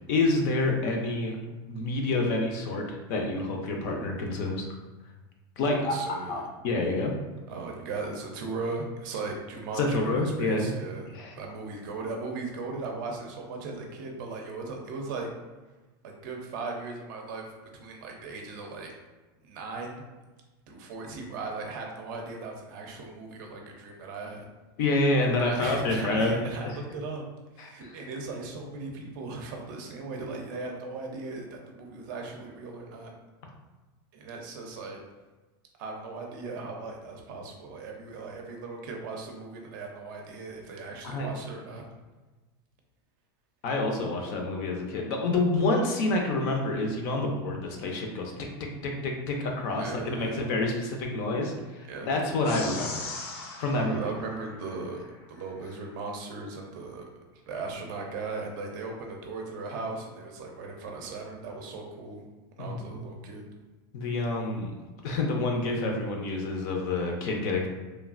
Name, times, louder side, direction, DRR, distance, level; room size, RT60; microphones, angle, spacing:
voice 1, 0.1-1.4 1.7-2.8 3.1-4.7 5.6-7.1 9.8-10.7 11.1-11.3 24.8-26.4 26.6-26.8 27.6-27.9 41.0-41.3 43.6-48.5 48.8-52.9 53.6-54.0 62.6-63.0 63.9-64.7 65.0-67.7, left 2 dB, 45° left, 1 dB, 0.5 m, -28 dB
voice 2, 5.7-6.4 7.5-11.1 11.3-15.3 16.0-18.9 19.4-20.0 20.7-24.5 25.4-27.2 27.5-33.1 34.1-35.0 35.8-41.8 49.8-50.4 51.8-52.1 53.7-57.1 57.5-62.2 62.6-63.5, right 3 dB, 50° right, 1 dB, 0.5 m, -38 dB
sound 1, 52.4-55.1, left 3 dB, 85° left, 0.6 m, -40 dB
3.1 x 2.3 x 2.4 m, 1.2 s
supercardioid pair, 170°, 13 cm